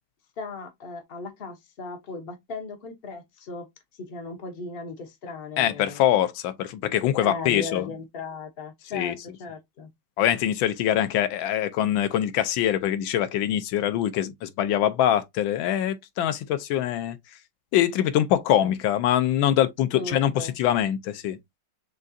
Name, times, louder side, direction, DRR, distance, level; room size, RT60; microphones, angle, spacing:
voice 1, 0.4-3.7 4.0-6.0 7.2-9.9 18.6-18.7 19.9-20.5, left 4 dB, 50° left, 0.7 m, -37 dB
voice 2, 5.6-7.9 8.9-9.2 10.2-17.2 17.7-21.4, left 11 dB, 75° left, 1.3 m, -24 dB
6.3 x 2.4 x 2.6 m
omnidirectional pair, 2.4 m